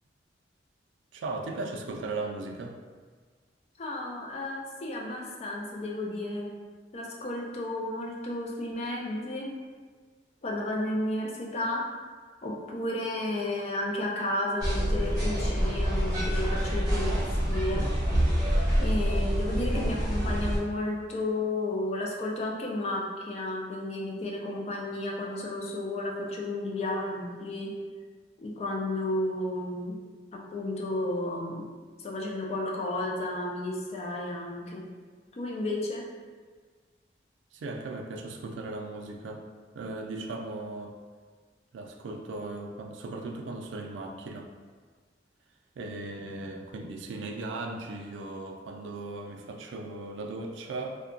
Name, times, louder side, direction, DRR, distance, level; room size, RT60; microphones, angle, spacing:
voice 1, 1.1-2.8 37.5-39.4 39.7-40.9 41.7-44.5 45.8-51.0, right 2 dB, 90° right, 3 dB, 0.3 m, -37 dB
voice 2, 3.8-6.5 6.9-9.5 10.4-11.9 12.4-17.1 17.5-17.9 18.8-27.8 28.4-30.0 30.3-31.6 32.0-34.8 35.3-36.1, left 1 dB, 35° left, -1 dB, 0.4 m, -32 dB
sound 1, 14.6-20.6, equal, 20° right, 1.1 m, -26 dB
2.7 x 2.2 x 2.5 m, 1.5 s
head